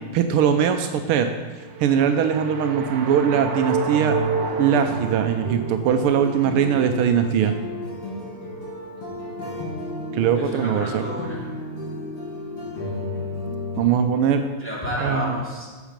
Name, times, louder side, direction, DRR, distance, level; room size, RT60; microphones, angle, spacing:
voice 1, 0.1-1.3 1.8-4.2 4.6-7.5 10.1-11.1 13.8-14.4 15.0-15.4, right 8 dB, 85° right, 7 dB, 1.5 m, -21 dB
sound 1, 1.6-5.9, right 4 dB, 70° right, 1.2 m, -28 dB
sound 2, 4.4-13.8, left 2 dB, 90° left, 3.1 m, -33 dB
voice 2, 10.4-11.4 14.6-15.7, equal, 5° left, -7 dB, 2.4 m, -31 dB
8.2 x 7.3 x 5.1 m, 1.4 s
omnidirectional pair, 2.4 m